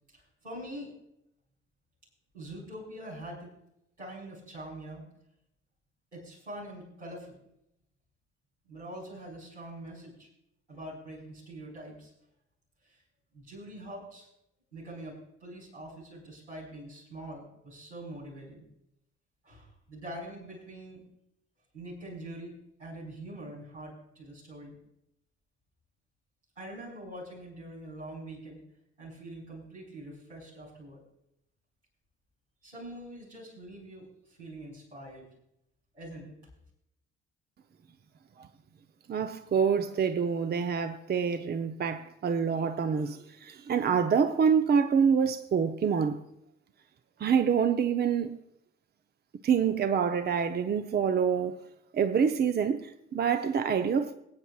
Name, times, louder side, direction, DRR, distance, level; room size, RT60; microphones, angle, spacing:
voice 1, 0.1-0.9 2.3-3.5 4.0-5.0 6.1-7.4 8.6-10.3 10.7-12.1 12.8-13.0 13.3-14.3 14.7-18.6 19.4-21.0 21.7-22.5 22.8-24.8 26.5-28.6 29.0-31.0 32.6-35.3 35.9-36.4, right 1 dB, 85° right, 4.7 m, -44 dB
voice 2, 39.1-46.2 47.2-48.4 49.4-51.6 51.9-54.2, right 6 dB, 30° right, 0.8 m, -26 dB
23.0 x 9.3 x 2.4 m
figure-of-eight pair, 45°, 35 cm